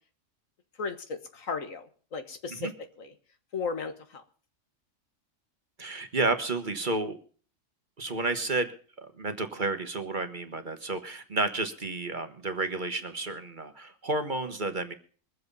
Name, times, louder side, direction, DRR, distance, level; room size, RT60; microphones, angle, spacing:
voice 1, 0.8-1.8 2.1-2.7 3.0-3.1 3.5-4.2, left 4 dB, 80° left, 8 dB, 1.9 m, -35 dB
voice 2, 5.8-7.2 8.0-8.7 9.0-14.9, right 2 dB, 40° right, 8 dB, 1.4 m, -31 dB
22.5 x 7.8 x 5.4 m, 0.42 s
omnidirectional pair, 1.4 m